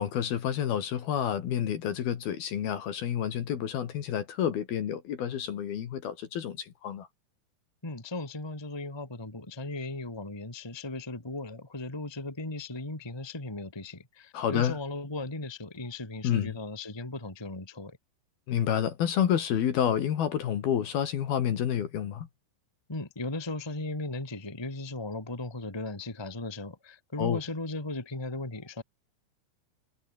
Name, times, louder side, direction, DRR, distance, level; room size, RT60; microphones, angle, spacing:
voice 1, 0.0-7.1 14.3-14.8 16.2-16.6 18.5-22.3 27.2-27.4, left 9 dB, 60° left, 3.5 m, -29 dB
voice 2, 7.8-18.0 22.9-28.8, left 2 dB, 10° left, 1.7 m, -37 dB
omnidirectional pair, 5.7 m